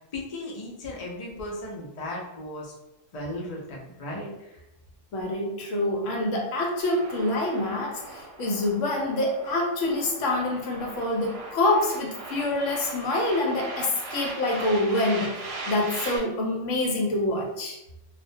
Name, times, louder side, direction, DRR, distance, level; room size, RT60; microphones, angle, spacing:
voice 1, 0.1-2.7 3.1-4.6 5.4-5.5, left 1 dB, 55° left, -3 dB, 0.4 m, -36 dB
voice 2, 5.1-15.3 15.7-17.8, left 2 dB, 75° left, 0 dB, 1.0 m, -26 dB
sound 1, 6.8-16.2, right 2 dB, 70° right, 0.9 m, -39 dB
2.3 x 2.1 x 2.6 m, 0.88 s
omnidirectional pair, 1.4 m